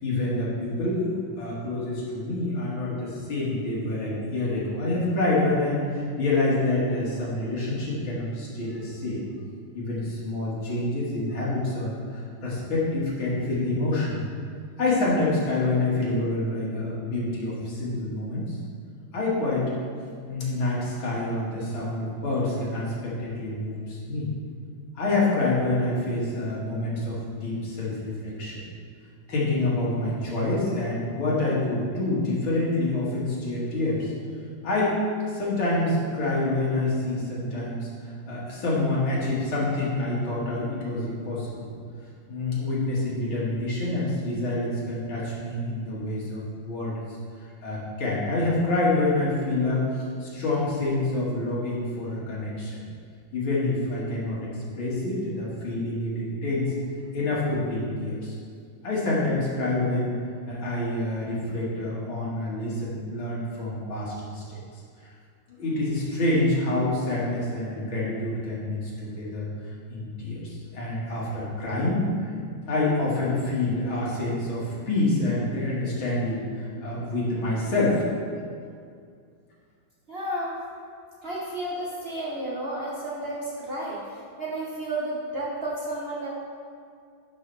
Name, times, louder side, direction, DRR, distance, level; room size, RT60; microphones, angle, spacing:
voice 1, 0.0-1.1 1.4-9.2 9.7-14.2 14.8-18.6 19.1-19.7 20.3-24.3 24.9-28.7 29.3-34.1 34.6-35.0 35.3-41.7 42.3-47.0 47.6-52.8 53.3-56.7 57.1-58.4 58.8-60.1 60.5-64.6 65.0-65.1 65.6-69.5 69.9-72.3 72.6-78.0, left 2 dB, 80° left, -6 dB, 2.7 m, -27 dB
voice 2, 80.1-80.6 81.2-86.3, right 1 dB, 40° right, -5 dB, 1.0 m, -32 dB
11.0 x 5.9 x 3.4 m, 2.2 s
omnidirectional pair, 2.2 m